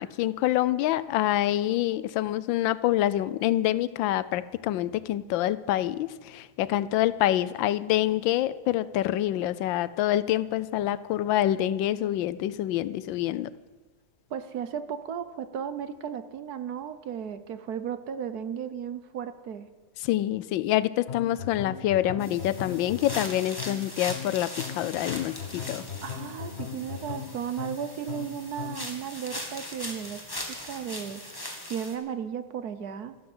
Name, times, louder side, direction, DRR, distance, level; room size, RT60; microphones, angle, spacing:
voice 1, 0.0-13.5 20.0-25.8, left 13 dB, 90° left, 17 dB, 1.4 m, -26 dB
voice 2, 14.3-19.7 26.0-30.3 30.6-31.2 31.7-33.1, right 8 dB, 60° right, 11 dB, 1.3 m, -35 dB
sound 1, 21.1-28.9, left 7 dB, 40° left, 1.4 m, -39 dB
sound 2, 22.2-31.9, left 1 dB, 10° left, 2.1 m, -40 dB
13.5 x 12.0 x 7.8 m, 1.3 s
omnidirectional pair, 2.0 m